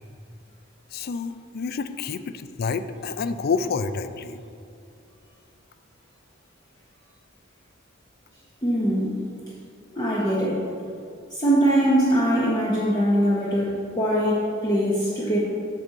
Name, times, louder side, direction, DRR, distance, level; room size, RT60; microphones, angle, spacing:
voice 1, 0.9-4.4, left 5 dB, 50° left, 11 dB, 0.4 m, -28 dB
voice 2, 8.6-9.2 10.0-10.6 11.3-15.4, right 1 dB, 20° left, -6 dB, 1.0 m, -22 dB
8.4 x 6.6 x 4.1 m, 2.5 s
head